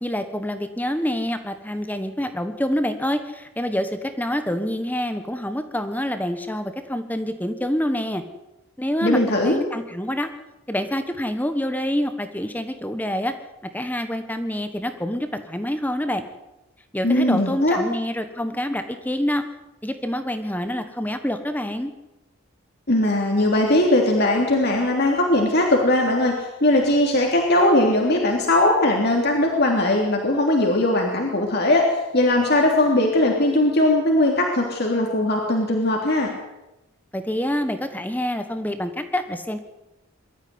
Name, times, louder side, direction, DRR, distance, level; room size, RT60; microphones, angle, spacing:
voice 1, 0.0-8.2 8.8-10.3 10.7-13.4 13.7-16.2 16.9-19.4 19.8-21.9 37.1-39.6, equal, 10° left, 8 dB, 1.3 m, -26 dB
voice 2, 9.0-9.6 17.0-17.8 22.9-36.3, left 1 dB, 50° left, 0 dB, 3.2 m, -19 dB
23.0 x 13.5 x 9.7 m, 0.98 s
head